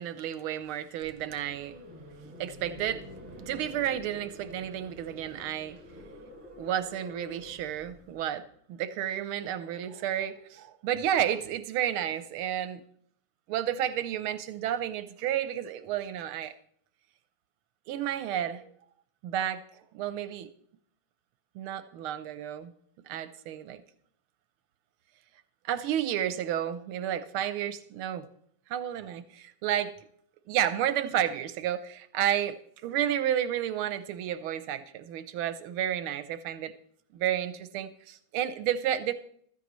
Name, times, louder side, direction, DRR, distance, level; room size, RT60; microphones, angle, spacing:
voice 1, 0.0-1.8 2.4-3.0 3.3-5.8 6.6-12.8 13.5-16.5 17.9-18.7 19.2-19.6 19.9-20.5 21.5-22.7 23.1-23.8 25.6-28.3 28.7-29.9 30.5-32.6 32.8-36.7 37.1-39.1, right 10 dB, 85° right, 12 dB, 1.6 m, -31 dB
sound 1, 1.0-8.2, left 1 dB, 20° right, 7.0 m, -48 dB
15.5 x 13.5 x 3.1 m, 0.64 s
omnidirectional pair, 2.3 m